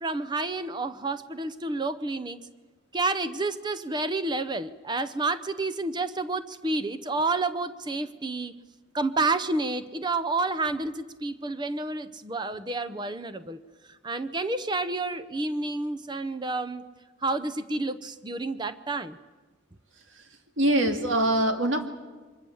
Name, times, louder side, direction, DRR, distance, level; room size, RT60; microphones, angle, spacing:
voice 1, 0.0-2.4 2.9-8.5 8.9-13.6 13.9-16.8 17.2-19.2, right 3 dB, 25° right, 12 dB, 0.7 m, -29 dB
voice 2, 20.6-21.9, right 1 dB, 85° right, 5 dB, 2.2 m, -24 dB
24.0 x 21.0 x 7.2 m, 1.3 s
head